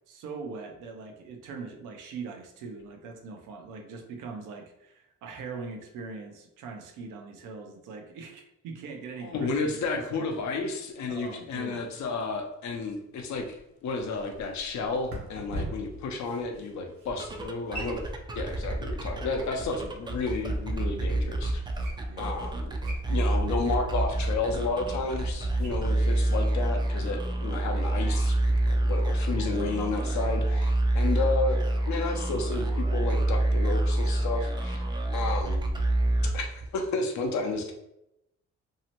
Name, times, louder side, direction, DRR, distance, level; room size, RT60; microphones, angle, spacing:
voice 1, 0.1-10.3 11.1-11.8 22.1-22.5, right 4 dB, 85° right, 4 dB, 0.6 m, -41 dB
voice 2, 9.2-13.5 13.8-18.0 18.3-21.6 22.2-22.8 23.1-28.4 28.7-31.6 31.9-34.8 35.1-35.7 36.3-37.7, left 3 dB, 65° left, 3 dB, 0.6 m, -32 dB
sound 1, 13.5-25.9, equal, 70° right, 1.1 m, -45 dB
sound 2, 17.2-36.8, right 1 dB, 15° right, 0.3 m, -27 dB
2.7 x 2.1 x 2.8 m, 0.83 s
cardioid pair, 90°, 30 cm